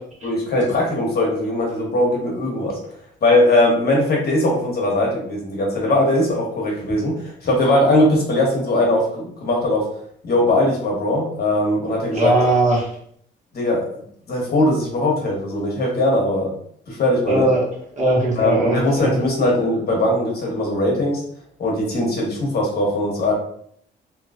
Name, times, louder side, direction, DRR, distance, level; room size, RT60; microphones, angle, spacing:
voice 1, 0.2-2.8 3.2-9.8 10.2-12.3 13.5-14.0 14.3-16.5 16.9-17.5 18.4-21.2 21.6-23.3, left 1 dB, 55° left, -2 dB, 1.1 m, -20 dB
voice 2, 12.1-12.9 17.3-17.6 18.0-19.2, right 1 dB, 40° right, -4 dB, 1.3 m, -19 dB
3.0 x 2.7 x 2.5 m, 0.65 s
cardioid pair, 90°, 20 cm